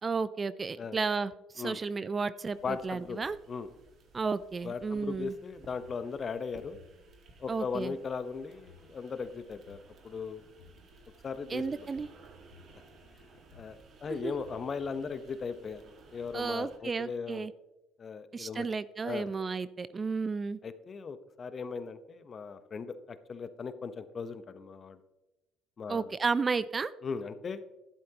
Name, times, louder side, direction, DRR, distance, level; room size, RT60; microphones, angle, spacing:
voice 1, 0.0-3.4 4.1-5.3 7.5-7.9 11.5-12.1 14.1-14.3 16.3-17.5 18.3-20.6 25.9-26.9, right 4 dB, 30° right, 16 dB, 0.4 m, -33 dB
sound 1, 2.5-16.8, right 3 dB, 55° right, 1.9 m, -57 dB
voice 2, 2.6-3.2 3.5-3.7 4.6-6.8 7.4-9.8 10.0-10.4 11.2-11.9 13.5-15.8 16.1-17.5 18.0-18.7 19.0-19.3 20.6-25.0 25.8-26.2 27.0-27.6, left 5 dB, 40° left, 12 dB, 0.9 m, -38 dB
sound 2, 4.9-6.0 6.6-7.9 8.5-9.8 10.4-11.8 12.3-13.7 14.3-14.9, left 9 dB, 85° left, 1.2 m, -60 dB
12.0 x 11.0 x 2.9 m, 0.98 s
hypercardioid pair, 70°, 0 cm